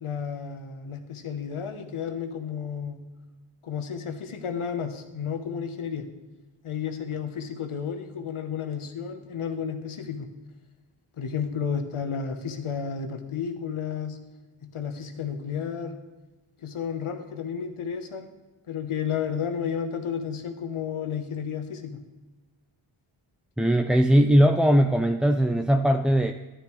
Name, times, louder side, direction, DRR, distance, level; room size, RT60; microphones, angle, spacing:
voice 1, 0.0-3.0 3.6-6.1 6.6-10.3 11.2-14.2 14.6-16.0 16.6-18.3 18.7-22.0, left 7 dB, 85° left, 7 dB, 1.1 m, -32 dB
voice 2, 23.6-26.3, equal, ahead, 5 dB, 0.3 m, -20 dB
11.0 x 10.0 x 3.2 m, 1.2 s
cardioid pair, 60°, 49 cm